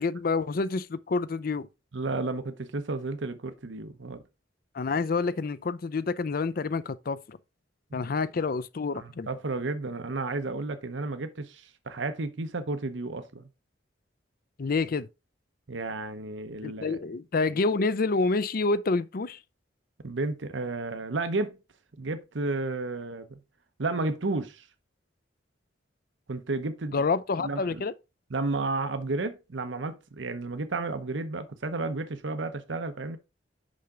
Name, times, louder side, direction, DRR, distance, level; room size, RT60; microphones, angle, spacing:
voice 1, 0.0-1.7 4.7-7.4 7.9-9.3 14.6-15.1 16.6-19.4 26.9-27.9, left 4 dB, 50° left, 0.5 m, -28 dB
voice 2, 1.9-4.2 8.9-13.5 15.7-17.0 20.0-21.6 22.0-23.4 23.8-24.7 26.3-27.0 27.4-27.8 28.3-33.2, right 3 dB, 85° right, 0.8 m, -32 dB
6.3 x 5.8 x 3.7 m
head